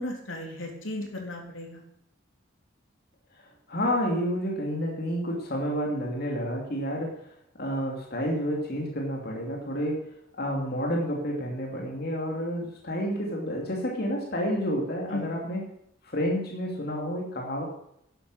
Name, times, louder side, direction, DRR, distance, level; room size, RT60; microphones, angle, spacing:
voice 1, 0.0-1.8 15.1-15.3, left 1 dB, 75° left, 1 dB, 3.4 m, -35 dB
voice 2, 3.4-7.1 7.6-10.0 10.4-15.6 16.0-17.6, equal, 50° left, -1 dB, 2.7 m, -30 dB
11.5 x 9.8 x 6.4 m, 0.76 s
head